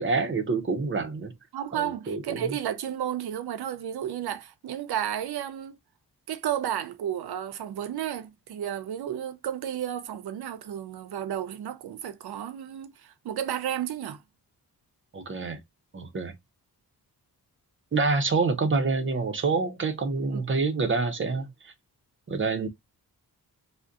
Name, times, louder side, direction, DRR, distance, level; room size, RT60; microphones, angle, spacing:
voice 1, 0.0-1.3 1.7-2.4 15.1-15.6 15.9-16.3 17.9-21.5 22.3-22.7, right 4 dB, 30° right, 0.6 m, -27 dB
voice 2, 1.5-5.8 6.3-14.2 20.3-20.4, right 10 dB, 80° right, 0.6 m, -32 dB
2.5 x 2.1 x 3.4 m
wide cardioid pair, 100°, 38 cm